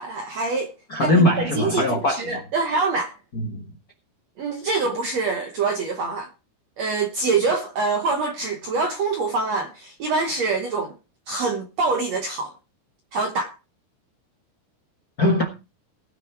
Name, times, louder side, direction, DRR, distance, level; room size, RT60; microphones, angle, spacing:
voice 1, 0.0-0.7 1.0-3.2 4.4-6.3 6.8-10.9 11.3-12.5 13.1-13.5, right 4 dB, 70° right, 1.6 m, -25 dB
voice 2, 0.9-2.4 3.3-3.7 15.2-15.6, left 1 dB, 75° left, 0.8 m, -21 dB
19.0 x 6.6 x 4.6 m
omnidirectional pair, 4.6 m